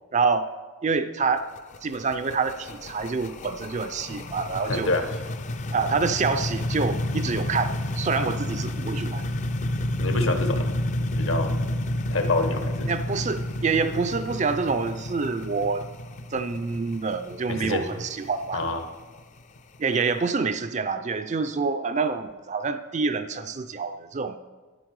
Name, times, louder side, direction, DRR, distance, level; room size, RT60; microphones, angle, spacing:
voice 1, 0.1-0.5 0.8-1.5 1.8-4.9 5.7-9.2 12.9-15.9 16.3-18.6 19.8-24.4, right 4 dB, 35° right, 10 dB, 0.4 m, -27 dB
sound 1, 1.4-20.1, left 1 dB, 35° left, 0.5 m, -31 dB
voice 2, 4.7-5.1 10.0-10.7 11.2-11.6 12.1-12.9 17.5-17.9 18.5-18.8, left 2 dB, 65° left, 6 dB, 1.2 m, -26 dB
11.0 x 9.7 x 4.8 m, 1.3 s
head